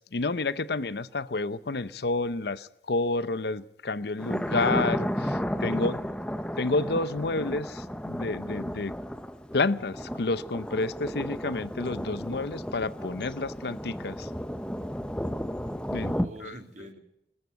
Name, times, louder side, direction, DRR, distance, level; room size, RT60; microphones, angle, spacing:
voice 1, 0.0-5.9 6.6-8.9 9.5-14.3 15.9-16.2 16.4-16.6, left 3 dB, 70° left, 16 dB, 0.7 m, -30 dB
Thunder, 4.2-16.3, equal, 5° left, 0.8 m, -33 dB
voice 2, 5.7-6.1 15.9-17.0, right 1 dB, 40° right, 5 dB, 2.8 m, -46 dB
21.0 x 14.0 x 9.4 m, 0.82 s
head